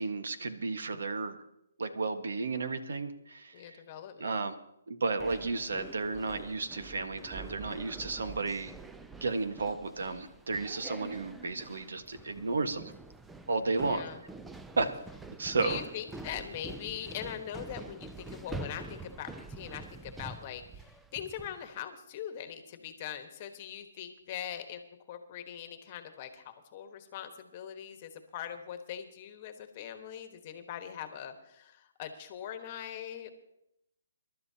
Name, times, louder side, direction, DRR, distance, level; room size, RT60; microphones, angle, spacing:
voice 1, 0.0-1.4 1.8-3.8 4.2-4.6 4.9-8.7 9.2-12.9 13.5-14.0 14.8-14.9 15.4-15.8, right 3 dB, 75° right, 8 dB, 1.4 m, -33 dB
voice 2, 3.5-4.4 13.8-14.2 15.6-33.3, left 9 dB, 30° left, 8 dB, 1.3 m, -42 dB
sound 1, 5.2-21.7, right 3 dB, 5° right, 0.4 m, -46 dB
26.5 x 12.0 x 2.9 m, 0.81 s
hypercardioid pair, 165°, 0 cm